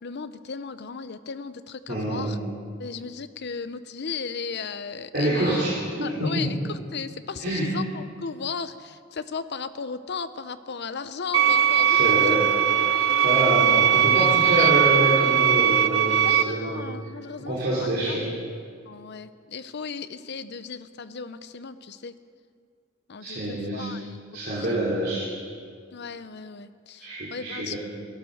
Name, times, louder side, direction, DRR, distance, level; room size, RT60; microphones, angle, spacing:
voice 1, 0.0-2.4 2.8-5.6 6.0-12.0 12.3-12.4 12.9-13.1 13.5-13.9 14.1-14.7 16.2-18.4 18.9-22.1 23.1-24.2 24.9-25.0 25.9-27.8, left 5 dB, 60° left, 12 dB, 0.7 m, -36 dB
voice 2, 1.9-2.4 5.1-6.6 7.4-7.7 11.8-12.5 13.2-16.9 17.4-18.3 23.2-23.9 24.3-25.3 27.0-27.8, right 1 dB, 55° right, -8 dB, 3.3 m, -26 dB
sound 1, 11.3-16.4, right 9 dB, 75° right, 0.8 m, -20 dB
17.0 x 12.5 x 6.5 m, 2.2 s
head